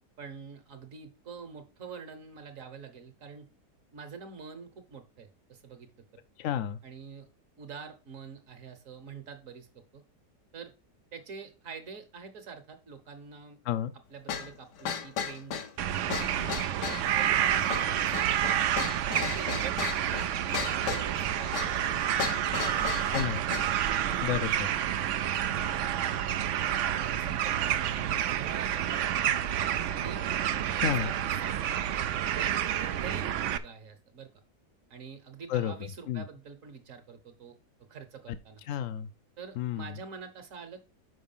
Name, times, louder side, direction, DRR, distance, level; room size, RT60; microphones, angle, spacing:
voice 1, 0.2-3.5 3.9-5.9 6.8-7.3 7.6-9.7 9.9-10.0 10.5-10.7 11.1-13.6 14.1-15.9 16.3-16.6 17.1-18.4 19.2-19.8 20.6-22.2 22.6-23.0 24.0-24.7 25.0-26.2 26.9-29.5 29.9-30.2 30.7-32.6 32.9-34.3 34.9-37.5 37.9-38.6 39.4-40.8, right 5 dB, 55° right, 1.4 m, -46 dB
voice 2, 6.4-6.8 13.6-13.9 23.1-23.4 24.2-24.7 30.8-31.1 35.5-36.3 38.3-38.4 38.6-39.1 39.6-40.0, left 10 dB, 65° left, 0.8 m, -31 dB
sound 1, 14.3-23.8, left 7 dB, 80° left, 1.5 m, -36 dB
sound 2, 15.8-33.6, right 10 dB, 70° right, 0.7 m, -29 dB
6.4 x 4.8 x 5.4 m
omnidirectional pair, 1.8 m